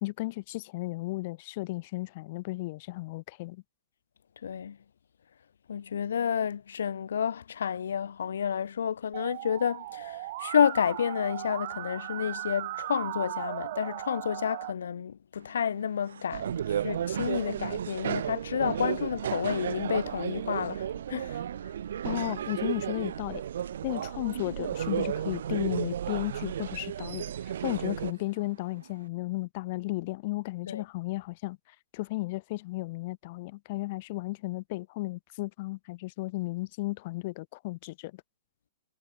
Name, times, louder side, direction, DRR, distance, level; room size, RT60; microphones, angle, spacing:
voice 1, 0.0-3.6 22.0-23.4 23.8-31.6 31.9-38.2, left 21 dB, 35° left, 1.5 m, -34 dB
voice 2, 4.4-4.8 5.7-21.7 30.7-30.8, left 8 dB, 80° left, 0.5 m, -30 dB
Musical instrument, 9.1-14.7, right 17 dB, 40° right, 1.6 m, -37 dB
sound 1, 15.4-29.1, right 7 dB, 85° right, 1.7 m, -47 dB
sound 2, 16.3-28.1, right 10 dB, 60° right, 1.2 m, -33 dB
hypercardioid pair, 170°, 0 cm